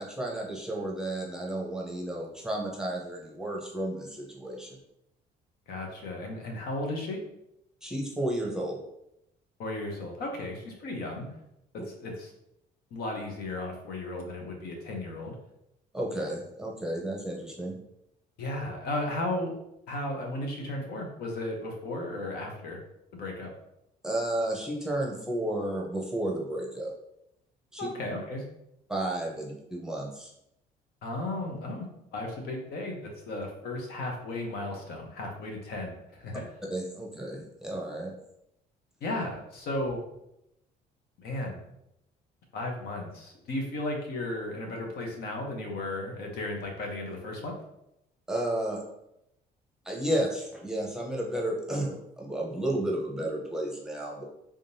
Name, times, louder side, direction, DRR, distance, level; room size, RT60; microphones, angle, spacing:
voice 1, 0.0-4.8 7.8-8.8 15.9-17.8 24.0-26.9 27.7-27.9 28.9-30.3 36.7-38.1 48.3-48.8 49.8-54.2, right 1 dB, 5° right, -3 dB, 0.8 m, -32 dB
voice 2, 5.7-7.2 9.6-11.3 11.7-12.3 12.9-15.3 18.4-19.6 19.9-22.8 23.1-23.5 27.8-28.4 31.0-36.4 39.0-40.0 41.2-41.6 42.5-47.5, left 2 dB, 70° left, 1 dB, 0.9 m, -35 dB
3.6 x 3.5 x 2.7 m, 0.82 s
cardioid pair, 110°, 17 cm